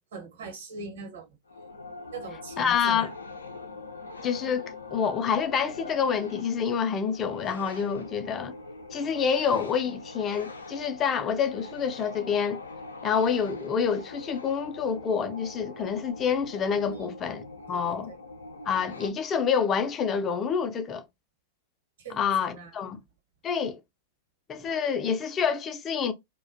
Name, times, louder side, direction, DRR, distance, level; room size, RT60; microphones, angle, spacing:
voice 1, 0.1-1.3 2.1-3.1 16.9-17.1 17.7-18.2 22.0-22.7, right 4 dB, 65° right, 1.1 m, -42 dB
sound 1, 1.5-19.1, left 3 dB, 85° left, 0.5 m, -42 dB
voice 2, 2.6-3.1 4.2-8.5 8.9-12.6 13.0-18.1 18.7-21.0 22.1-23.0 23.4-23.8 24.5-26.1, left 6 dB, 25° left, 0.5 m, -27 dB
2.3 x 2.1 x 2.5 m
figure-of-eight pair, 100°, 0 cm